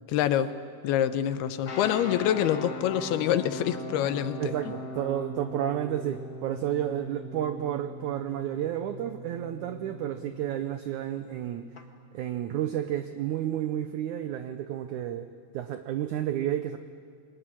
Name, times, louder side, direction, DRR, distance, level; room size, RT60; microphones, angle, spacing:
voice 1, 0.1-0.5 0.8-4.5, left 10 dB, 80° left, 12 dB, 2.9 m, -26 dB
sound 1, 1.6-11.8, left 1 dB, 45° left, 1.1 m, -40 dB
voice 2, 4.4-11.7 12.1-15.3 15.5-16.8, right 11 dB, 85° right, 10 dB, 1.7 m, -31 dB
23.5 x 20.0 x 10.0 m, 2.1 s
omnidirectional pair, 4.5 m